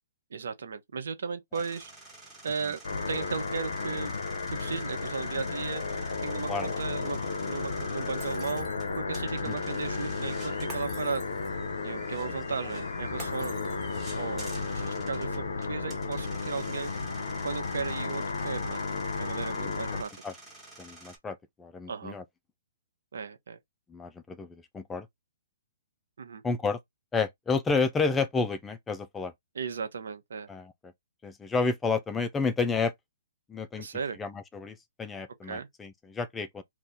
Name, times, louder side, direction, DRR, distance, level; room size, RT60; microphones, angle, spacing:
voice 1, 0.3-1.9 2.4-4.1 4.5-5.8 6.2-7.2 7.5-8.7 9.0-11.2 11.8-16.9 17.4-18.8 19.2-20.1 21.9-22.2 23.1-23.6 26.2-26.4 29.5-30.5 33.8-34.2 35.4-35.7, right 5 dB, 70° right, 0.9 m, -36 dB
sound 1, 1.5-21.2, right 2 dB, 5° right, 1.5 m, -50 dB
sound 2, 2.8-20.0, left 4 dB, 80° left, 0.6 m, -33 dB
Shatter, 8.2-9.1 10.7-11.7 13.2-14.2, right 4 dB, 20° right, 1.4 m, -47 dB
voice 2, 20.8-22.2 23.9-25.1 26.4-26.8 27.1-29.3 30.5-30.7 31.2-32.9 33.5-33.9 34.2-36.6, left 4 dB, 10° left, 0.4 m, -30 dB
2.8 x 2.5 x 3.5 m
hypercardioid pair, 135°, 0 cm